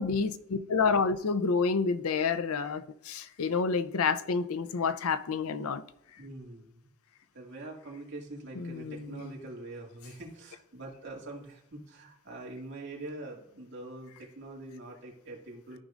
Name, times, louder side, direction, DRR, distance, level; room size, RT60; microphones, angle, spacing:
voice 1, 0.0-5.8 8.6-9.3, left 5 dB, 70° left, 0.5 m, -29 dB
voice 2, 6.2-6.9 7.3-15.8, right 2 dB, 55° right, 2.1 m, -44 dB
13.5 x 5.2 x 2.4 m
head